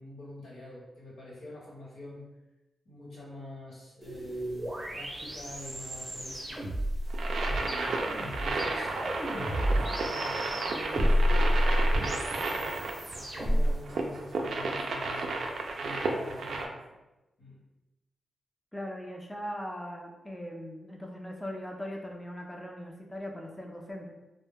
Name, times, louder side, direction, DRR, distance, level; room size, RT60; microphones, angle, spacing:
voice 1, 0.0-2.2 2.8-6.7 7.4-8.9 9.3-11.6 11.9-15.4 15.8-17.0 17.4-17.6, left 1 dB, 90° left, -6 dB, 1.0 m, -45 dB
sound 1, 4.0-13.8, equal, 30° right, 0.7 m, -30 dB
sound 2, 7.1-16.7, right 3 dB, 75° right, 0.3 m, -33 dB
voice 2, 18.7-24.2, equal, 10° left, 0 dB, 0.5 m, -40 dB
2.1 x 2.0 x 3.4 m, 1.0 s
cardioid pair, 65°, 0 cm